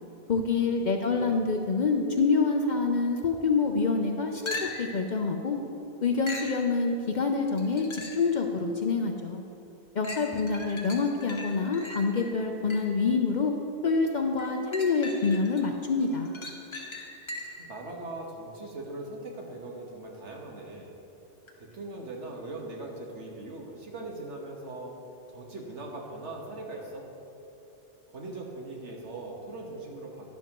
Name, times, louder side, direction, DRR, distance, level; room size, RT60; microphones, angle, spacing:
voice 1, 0.3-5.6 6.0-9.4 9.9-13.5 13.8-16.3, left 4 dB, 50° left, 3 dB, 0.6 m, -26 dB
voice 2, 0.8-1.5 17.6-20.9 21.6-24.9 25.3-27.1 28.1-30.3, right 2 dB, 75° right, -1 dB, 1.6 m, -40 dB
sound 1, 4.5-5.0 6.3-6.6 7.6-8.3 8.9-9.0 10.0-13.0 14.4-15.6 16.0-17.7 21.5-21.6, left 2 dB, 25° left, 1.0 m, -39 dB
11.5 x 10.5 x 3.0 m, 2.9 s
omnidirectional pair, 1.2 m